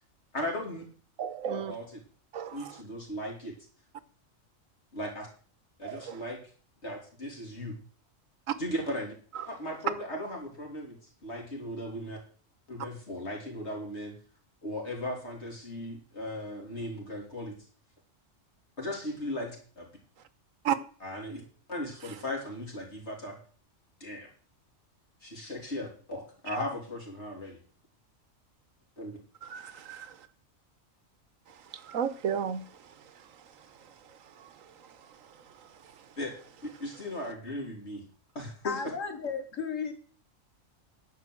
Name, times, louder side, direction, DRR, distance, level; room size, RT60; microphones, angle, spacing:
voice 1, 0.3-0.8 1.5-2.0 2.5-3.5 4.9-5.3 5.8-6.4 6.8-7.8 8.6-9.1 9.5-11.0 11.2-12.2 12.7-14.1 14.6-17.6 18.8-19.9 21.0-21.4 21.7-23.4 24.0-24.3 25.2-27.6 29.0-29.2 36.2-36.3 36.8-38.0 38.4-38.9, left 1 dB, 55° left, 0 dB, 3.8 m, -37 dB
voice 2, 1.2-1.7 2.3-2.8 5.8-6.2 8.5-8.6 20.6-20.8 29.4-30.3 31.5-33.3 33.6-35.5 35.8-36.0, right 8 dB, 90° right, 14 dB, 1.3 m, -36 dB
voice 3, 38.6-39.9, left 5 dB, 75° left, 7 dB, 1.7 m, -34 dB
10.5 x 6.0 x 7.7 m, 0.43 s
omnidirectional pair, 1.3 m